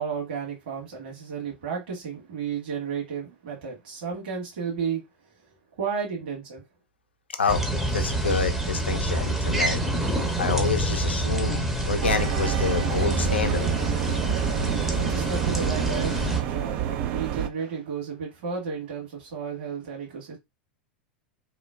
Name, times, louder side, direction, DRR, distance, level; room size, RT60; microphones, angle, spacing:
voice 1, 0.0-5.0 5.8-6.6 15.0-20.4, right 6 dB, 60° right, 1.5 m, -33 dB
sound 1, 7.5-16.4, right 1 dB, 5° right, 0.7 m, -27 dB
voice 2, 7.9-9.8 10.4-13.7, left 4 dB, 75° left, 0.5 m, -27 dB
sound 2, 12.0-17.5, right 10 dB, 45° right, 0.3 m, -28 dB
3.0 x 2.1 x 2.4 m
figure-of-eight pair, 90°, 6 cm